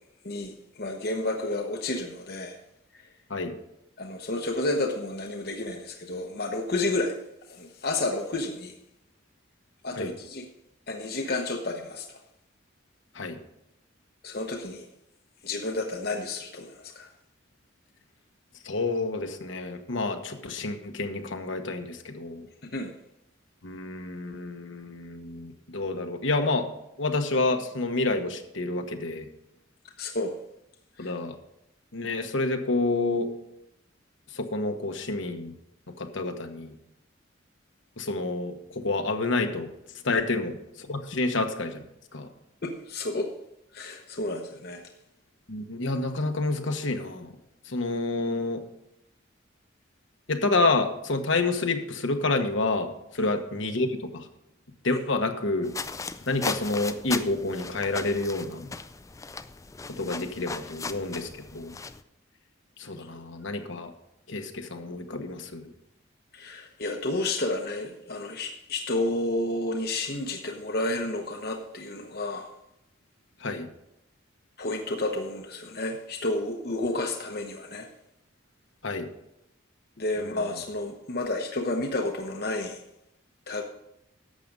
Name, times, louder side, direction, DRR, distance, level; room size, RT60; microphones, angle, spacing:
voice 1, 0.2-2.6 2.9-3.0 4.0-7.2 7.5-8.7 9.8-10.5 10.9-12.2 14.2-14.9 15.4-17.1 22.6-22.9 30.0-30.3 31.0-31.1 40.1-40.2 42.6-43.3 43.7-44.8 53.2-53.3 63.0-63.1 66.3-72.5 74.6-77.9 80.0-82.8 83.5-83.6, left 2 dB, 50° left, 3 dB, 0.9 m, -31 dB
voice 2, 18.6-22.5 23.6-26.7 27.0-29.3 31.0-31.3 31.9-33.3 34.3-35.5 36.0-36.7 38.0-39.7 40.0-41.8 42.1-42.3 45.5-47.3 47.7-48.6 50.3-52.9 53.2-54.3 54.8-55.7 56.3-58.7 60.0-61.8 62.8-63.9 64.3-65.7 73.4-73.7 78.8-79.1 80.2-80.4, left 2 dB, 70° left, 5 dB, 1.2 m, -29 dB
sound 1, 55.6-62.0, left 4 dB, 15° left, 0.4 m, -37 dB
11.5 x 7.6 x 5.3 m, 0.83 s
head